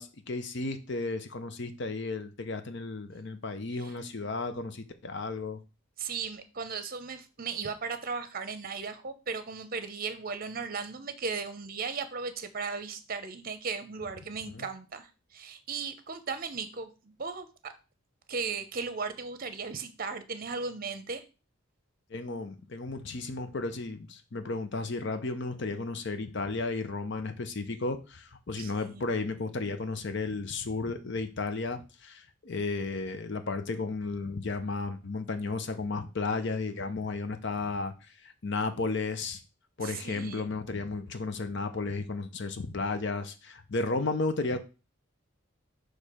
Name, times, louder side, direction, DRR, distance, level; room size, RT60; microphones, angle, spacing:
voice 1, 0.0-5.6 14.5-14.7 22.1-39.4 39.8-44.6, left 3 dB, 55° left, 9 dB, 0.7 m, -33 dB
voice 2, 6.0-17.7 18.3-21.2 28.6-29.0 39.8-40.5, right 5 dB, 45° right, 11 dB, 0.7 m, -36 dB
6.4 x 3.3 x 4.9 m, 0.31 s
head